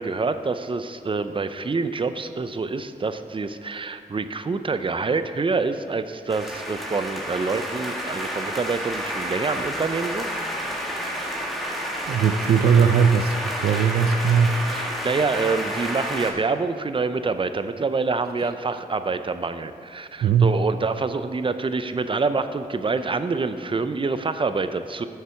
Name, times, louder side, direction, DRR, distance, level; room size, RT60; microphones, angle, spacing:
voice 1, 0.0-10.3 14.7-25.0, right 4 dB, 35° right, 10 dB, 0.5 m, -26 dB
sound 1, 6.3-16.3, equal, ahead, 1.7 m, -30 dB
voice 2, 12.1-14.5 20.2-20.5, right 6 dB, 80° right, 9 dB, 0.4 m, -19 dB
9.6 x 6.6 x 4.5 m, 2.3 s
cardioid pair, 60°, 16 cm